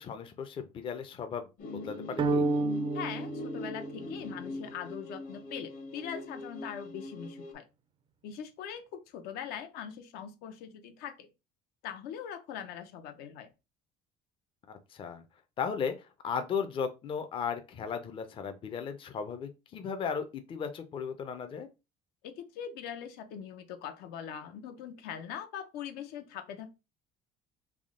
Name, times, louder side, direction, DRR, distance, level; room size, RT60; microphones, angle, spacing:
voice 1, 0.0-1.5 1.8-2.5 14.7-15.2 15.6-16.0 16.2-21.7, left 6 dB, 30° left, 0.5 m, -36 dB
sound 1, 1.6-7.5, left 2 dB, 55° left, 1.0 m, -42 dB
sound 2, 2.2-4.5, right 3 dB, 30° right, 0.4 m, -31 dB
voice 2, 2.9-7.6 8.2-11.3 11.8-13.5 22.2-26.7, left 8 dB, 75° left, 0.6 m, -42 dB
3.5 x 2.1 x 3.6 m
cardioid pair, 130°, 17 cm